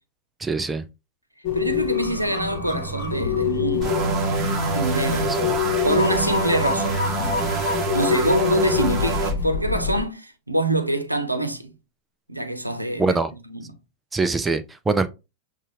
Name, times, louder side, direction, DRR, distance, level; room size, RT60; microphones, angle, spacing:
voice 1, 0.4-0.8 5.4-5.6 13.0-13.3 14.1-15.1, right 3 dB, 10° right, 0.5 m, -23 dB
sound 1, 1.4-10.0, left 6 dB, 45° left, 1.0 m, -26 dB
voice 2, 1.5-4.0 4.7-5.4 5.8-7.1 7.9-11.7 12.3-13.2 13.5-13.7, right 1 dB, 85° right, 0.8 m, -25 dB
sound 2, 3.8-9.3, right 3 dB, 30° right, 1.1 m, -26 dB
7.3 x 2.5 x 2.7 m
figure-of-eight pair, 90°, 0 cm